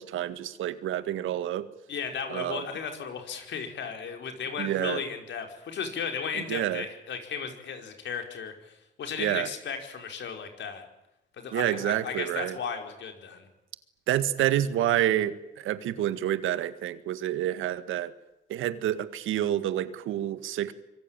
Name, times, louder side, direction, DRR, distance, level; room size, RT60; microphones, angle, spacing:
voice 1, 0.0-1.7 2.3-2.6 4.6-5.0 6.3-6.8 9.2-9.5 11.5-12.6 14.1-18.1 18.5-20.7, right 12 dB, 85° right, 12 dB, 1.9 m, -28 dB
voice 2, 1.9-10.8 11.4-13.4, left 6 dB, 65° left, 5 dB, 5.0 m, -35 dB
25.5 x 23.5 x 9.1 m, 0.91 s
cardioid pair, 90°, 20 cm